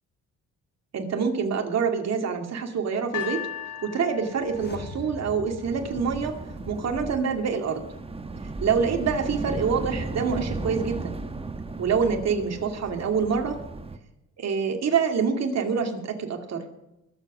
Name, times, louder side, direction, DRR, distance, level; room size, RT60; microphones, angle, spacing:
voice 1, 0.9-3.5 3.8-6.4 6.7-7.8 8.6-11.2 11.8-13.6 14.4-16.7, right 6 dB, 60° right, 4 dB, 2.4 m, -26 dB
sound 1, 3.1-6.3 7.1-7.2, left 11 dB, 80° left, 4.1 m, -38 dB
sound 2, 4.3-7.2 7.4-7.5, left 3 dB, 35° left, 1.7 m, -43 dB
sound 3, 5.6-14.0, right 3 dB, 20° right, 1.1 m, -35 dB
21.0 x 7.7 x 6.1 m, 0.93 s
cardioid pair, 90°, 30 cm